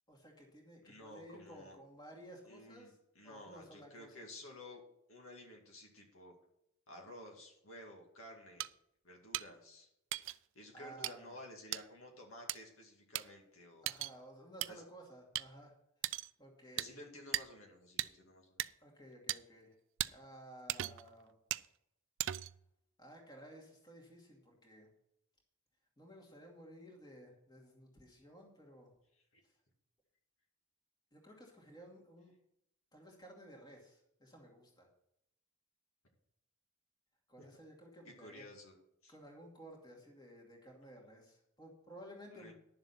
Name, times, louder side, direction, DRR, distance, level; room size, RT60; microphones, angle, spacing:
voice 1, 0.1-3.0 3.2-4.2 10.7-11.4 13.8-15.7 16.1-16.9 18.8-19.7 20.1-21.3 23.0-24.9 26.0-28.9 31.1-32.3 32.9-34.9 37.3-38.4 39.1-42.5, right 1 dB, 20° left, 0 dB, 2.4 m, -55 dB
voice 2, 0.8-1.8 2.4-4.8 5.1-6.3 6.9-8.7 9.0-9.9 10.5-13.9 14.7-14.8 16.8-18.6 29.3-29.4 37.4-37.5 38.0-38.8 39.0-39.1 42.3-42.5, left 1 dB, 70° left, 1 dB, 2.3 m, -53 dB
sound 1, 8.6-8.7 9.3-9.5 10.1-10.4 11.0-11.1 11.7-11.8 12.5-12.6 13.1-13.2 13.9-14.1 14.6-14.7 15.3-15.5 16.0-16.3 16.8-16.9 17.3-17.4 18.0-18.1 18.6-18.7 19.3-19.4 20.0-20.1 20.7-21.1 21.5-21.7 22.2-22.6, right 14 dB, 60° right, 0.3 m, -37 dB
11.0 x 7.1 x 5.7 m, 0.78 s
head